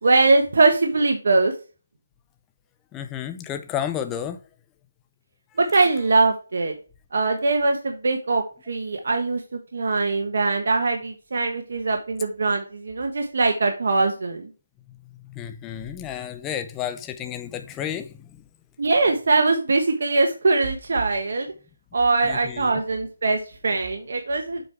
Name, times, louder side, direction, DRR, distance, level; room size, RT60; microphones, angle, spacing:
voice 1, 0.0-1.5 5.6-6.7 7.1-9.4 9.7-14.5 18.8-21.5 21.9-24.6, right 3 dB, 60° right, 1.2 m, -22 dB
voice 2, 2.9-4.4 5.7-5.9 14.9-18.4 22.2-22.7, left 9 dB, 10° left, 0.5 m, -32 dB
7.7 x 4.6 x 3.3 m
hypercardioid pair, 165°, 0 cm